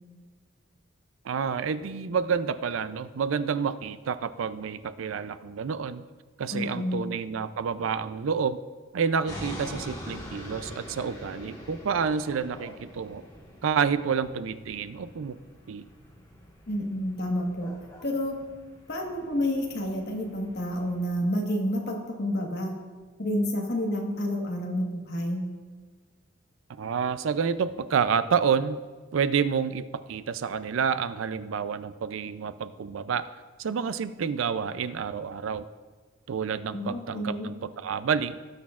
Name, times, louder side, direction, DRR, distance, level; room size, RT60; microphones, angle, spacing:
voice 1, 1.2-6.1 6.4-8.6 8.9-13.2 13.6-15.4 15.7-15.9 26.7-28.8 29.1-33.3 33.6-35.7 36.3-38.4, right 6 dB, 75° right, 14 dB, 0.4 m, -29 dB
voice 2, 6.5-7.0 16.7-17.7 18.0-18.4 18.9-22.8 23.2-25.4 36.7-37.5, left 1 dB, 55° left, 1 dB, 1.4 m, -29 dB
sound 1, 9.3-21.2, equal, 20° left, 1.5 m, -45 dB
18.0 x 6.3 x 2.4 m, 1.4 s
head